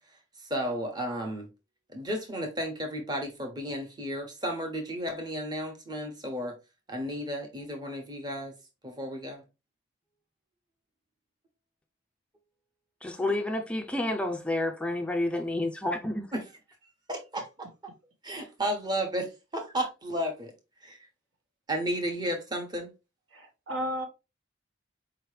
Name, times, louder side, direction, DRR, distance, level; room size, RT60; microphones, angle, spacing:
voice 1, 0.5-1.5 1.9-6.6 6.9-8.5 8.8-9.4 16.3-16.4 17.1-17.5 18.2-20.5 20.8-21.0 21.7-22.9, equal, 20° right, 1.0 m, -33 dB
voice 2, 13.0-16.3, left 1 dB, 5° left, 0.3 m, -30 dB
voice 3, 23.3-24.1, equal, 85° right, 1.6 m, -33 dB
4.7 x 3.0 x 3.2 m
head